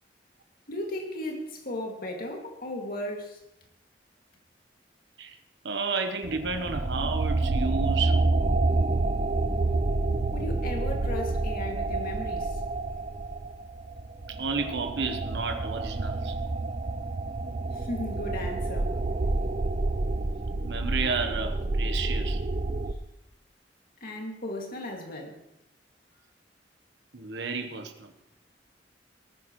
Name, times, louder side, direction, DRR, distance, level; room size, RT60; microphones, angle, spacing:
voice 1, 0.7-3.4 10.3-12.6 17.7-19.0 24.0-25.4, left 1 dB, 55° left, 2.4 m, -36 dB
voice 2, 5.6-8.2 14.4-16.3 20.6-22.4 27.1-28.1, right 4 dB, 80° right, 1.1 m, -31 dB
sound 1, 6.2-22.9, right 2 dB, 40° right, 0.6 m, -28 dB
19.5 x 10.0 x 3.2 m
head